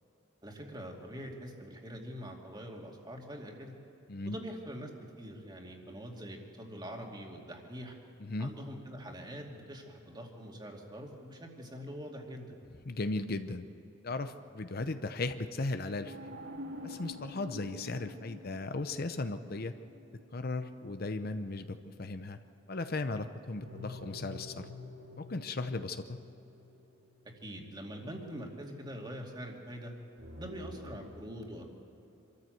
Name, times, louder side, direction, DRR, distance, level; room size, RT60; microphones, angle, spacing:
voice 1, 0.4-3.7 4.2-4.9 5.2-8.0 8.4-12.5 27.2-29.9 30.4-31.6, equal, 20° right, 1 dB, 2.4 m, -44 dB
voice 2, 8.2-8.5 12.8-13.7 14.0-16.3 16.8-19.7 20.3-22.4 22.7-24.7 25.2-26.2, left 2 dB, 50° left, 9 dB, 0.7 m, -36 dB
sound 1, 16.0-21.2 23.6-27.6 30.2-31.1, left 1 dB, 75° right, 3.5 m, -47 dB
26.0 x 13.5 x 7.8 m, 2.9 s
head